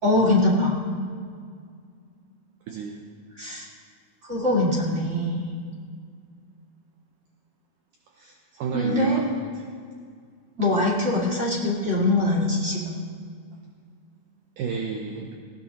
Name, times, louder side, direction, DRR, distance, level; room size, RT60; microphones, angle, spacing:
voice 1, 0.0-0.7 3.3-3.7 4.3-5.5 8.7-9.2 10.6-12.9, left 1 dB, 35° right, -4 dB, 1.1 m, -23 dB
voice 2, 2.7-3.0 8.2-9.3 9.6-9.7 14.6-15.3, right 5 dB, 75° right, 1 dB, 2.0 m, -31 dB
19.5 x 16.5 x 2.8 m, 2.1 s
omnidirectional pair, 4.6 m